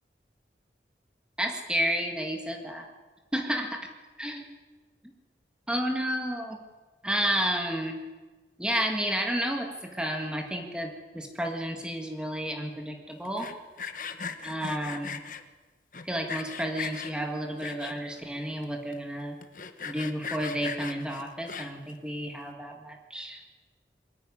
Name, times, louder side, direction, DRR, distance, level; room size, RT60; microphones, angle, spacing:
voice 1, 1.4-2.9 3.3-3.8 4.2-4.4 5.7-6.6 7.0-8.0 8.6-13.5 14.4-15.2 16.0-19.4 19.9-23.4, equal, 5° right, 2 dB, 1.8 m, -31 dB
Sawing, 13.2-15.4 15.9-17.1 17.6-18.2 18.6-18.7 18.9-19.0 19.4-21.9, left 6 dB, 50° left, 1.2 m, -38 dB
21.5 x 15.0 x 10.0 m, 1.3 s
head